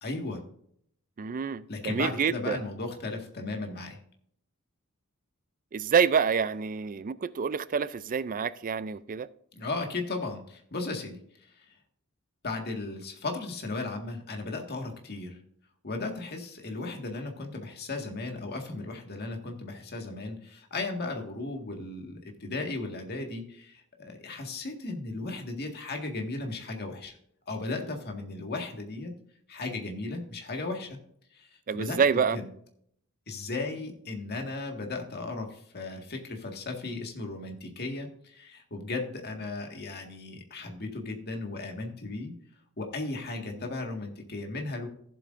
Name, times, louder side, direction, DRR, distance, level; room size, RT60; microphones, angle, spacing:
voice 1, 0.0-0.4 1.7-4.0 9.5-11.7 12.4-15.4 15.8-27.2 27.5-29.1 29.5-31.0 31.3-32.0 32.3-32.5 33.3-42.3 42.8-44.9, left 3 dB, 45° left, 2 dB, 1.8 m, -36 dB
voice 2, 1.2-2.6 5.7-9.3 31.7-32.4, right 6 dB, 40° right, 16 dB, 0.4 m, -27 dB
14.5 x 7.8 x 2.6 m, 0.66 s
head